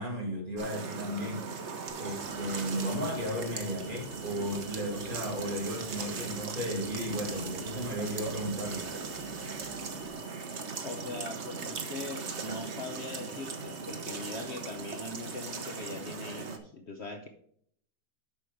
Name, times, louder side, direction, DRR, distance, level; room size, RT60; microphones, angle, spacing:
voice 1, 0.0-1.4 2.0-8.8, equal, 30° right, -1 dB, 2.4 m, -34 dB
sound 1, 0.6-16.6, right 5 dB, 50° right, 1.2 m, -39 dB
sound 2, 1.9-10.2, right 1 dB, 90° left, 2.6 m, -52 dB
sound 3, 2.3-16.6, right 2 dB, 80° right, 2.2 m, -56 dB
voice 2, 10.8-17.3, left 3 dB, 50° left, 4 dB, 1.0 m, -41 dB
7.7 x 6.2 x 5.1 m, 0.64 s
omnidirectional pair, 1.7 m